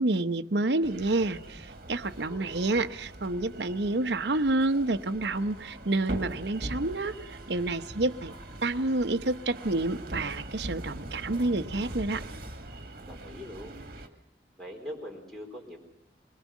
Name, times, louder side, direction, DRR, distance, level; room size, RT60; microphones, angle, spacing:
voice 1, 0.0-7.1 7.5-8.3 8.6-12.2, right 2 dB, 75° right, 10 dB, 0.9 m, -28 dB
sound 1, 0.8-14.1, right 1 dB, 50° right, 1.9 m, -42 dB
voice 2, 2.2-2.7 13.1-13.8 14.6-15.8, equal, ahead, -1 dB, 4.0 m, -42 dB
22.5 x 20.5 x 7.3 m, 0.70 s
head